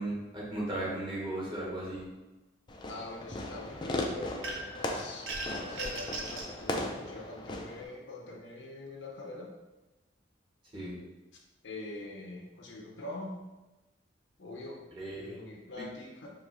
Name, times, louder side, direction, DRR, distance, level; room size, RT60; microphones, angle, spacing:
voice 1, 0.0-2.1 10.7-10.9 15.0-15.3, right 1 dB, 25° right, -6 dB, 1.4 m, -36 dB
Fireworks, 2.7-7.8, left 1 dB, 25° left, 0.4 m, -37 dB
voice 2, 2.9-5.3 5.6-9.5 11.6-13.4 14.4-14.8 15.1-16.3, left 2 dB, 80° left, 0 dB, 0.8 m, -44 dB
sound 1, 4.4-4.8 5.3-6.5, right 2 dB, 75° right, 0.7 m, -38 dB
5.2 x 3.0 x 3.1 m, 1.1 s
head